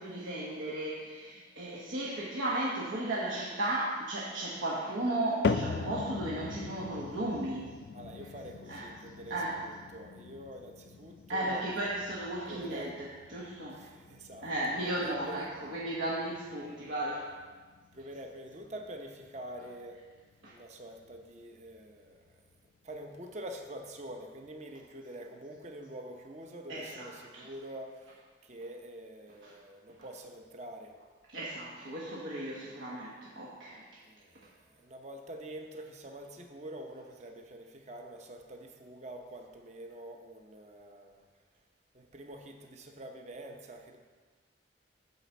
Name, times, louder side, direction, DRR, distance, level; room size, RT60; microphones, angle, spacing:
voice 1, 0.0-7.8 8.7-8.8 9.3-9.6 11.3-13.8 14.4-17.3 20.4-20.5 26.7-27.5 29.4-29.5 31.3-33.8, right 1 dB, 80° right, -6 dB, 1.2 m, -35 dB
sound 1, 5.4-21.8 22.1-22.6 23.2-23.3 24.1-24.2, left 5 dB, 60° left, 0.3 m, -41 dB
voice 2, 7.9-12.0 12.5-12.9 13.7-15.5 17.9-20.0 20.5-22.4 22.8-31.0 34.0-41.2 41.9-44.0, right 1 dB, 35° right, 4 dB, 0.8 m, -46 dB
9.7 x 4.1 x 7.0 m, 1.5 s
head